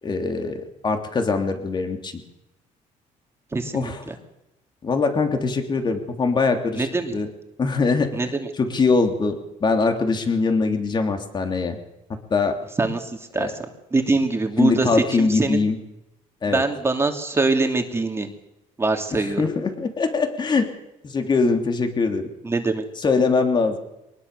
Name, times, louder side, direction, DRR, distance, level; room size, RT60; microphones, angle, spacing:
voice 1, 0.0-2.2 3.7-4.0 4.8-7.3 7.6-8.3 8.6-11.8 12.3-12.6 13.4-13.5 14.6-15.8 16.4-16.6 19.1-20.7 21.0-22.3 23.0-23.8, left 4 dB, 30° left, 5 dB, 3.3 m, -22 dB
voice 2, 3.5-4.1 6.7-7.1 8.1-8.5 12.8-13.7 13.9-15.6 16.5-18.3 18.8-19.4 22.4-22.8, right 3 dB, 20° right, 4 dB, 2.8 m, -23 dB
23.5 x 20.0 x 6.9 m, 0.91 s
cardioid pair, 115°, 14 cm